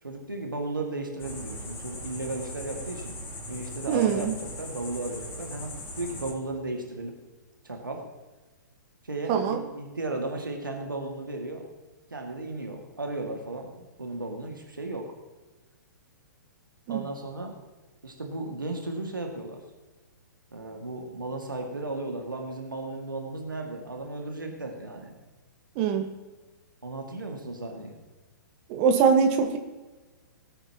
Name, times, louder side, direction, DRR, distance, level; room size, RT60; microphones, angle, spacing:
voice 1, 0.0-3.1 3.5-5.7 6.0-7.1 7.6-8.0 9.0-11.6 12.1-15.1 16.9-17.5 18.0-19.6 20.5-25.1 26.8-27.9, right 2 dB, 90° right, 2 dB, 1.9 m, -35 dB
sound 1, 1.2-6.3, equal, 20° left, 2.9 m, -39 dB
voice 2, 3.9-4.3 9.3-9.6 16.9-17.0 25.7-26.1 28.7-29.6, right 6 dB, 35° right, 5 dB, 1.3 m, -23 dB
18.5 x 9.0 x 2.9 m, 1.2 s
figure-of-eight pair, 120°, 11 cm